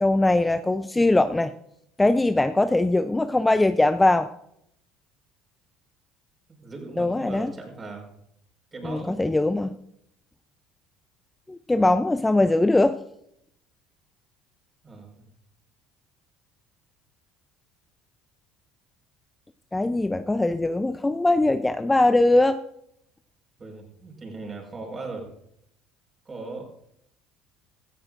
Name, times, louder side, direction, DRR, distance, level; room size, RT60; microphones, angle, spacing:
voice 1, 0.0-1.5 2.0-4.3 7.0-7.5 8.8-9.7 11.5-13.0 19.7-22.6, left 2 dB, 15° left, 11 dB, 0.5 m, -21 dB
voice 2, 6.6-8.1 8.7-9.2 14.8-15.2 23.6-25.3 26.2-26.6, right 3 dB, 30° right, 2 dB, 5.0 m, -38 dB
16.5 x 14.0 x 2.5 m, 0.75 s
hypercardioid pair, 75°, 0 cm